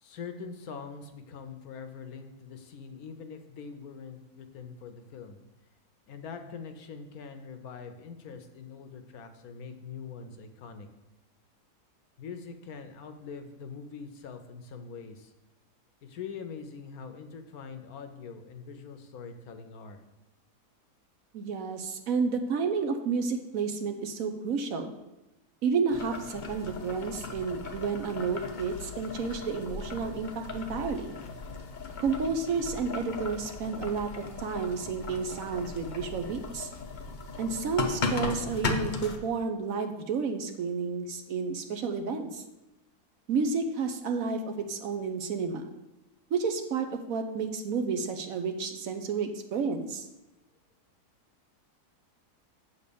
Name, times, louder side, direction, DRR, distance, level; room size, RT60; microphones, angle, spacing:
voice 1, 0.0-5.4 6.1-10.9 12.2-15.3 16.0-20.0, left 5 dB, 70° left, 7 dB, 1.2 m, -43 dB
voice 2, 21.3-24.9 25.6-31.1 32.0-36.7 37.4-42.4 43.3-45.7 46.3-50.1, right 5 dB, 65° right, 6 dB, 1.0 m, -31 dB
Boiling, 25.9-39.2, left 3 dB, 45° left, 0.6 m, -37 dB
7.8 x 4.2 x 6.8 m, 0.99 s
omnidirectional pair, 1.7 m